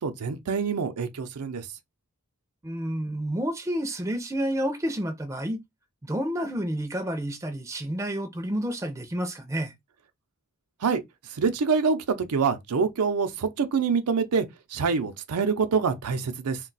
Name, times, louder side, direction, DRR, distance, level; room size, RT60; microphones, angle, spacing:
voice 1, 0.0-1.7 10.8-11.0 11.3-16.6, right 5 dB, 90° right, 0.5 m, -26 dB
voice 2, 2.6-5.6 6.0-9.7, equal, 15° right, 0.4 m, -30 dB
2.3 x 2.2 x 3.9 m
head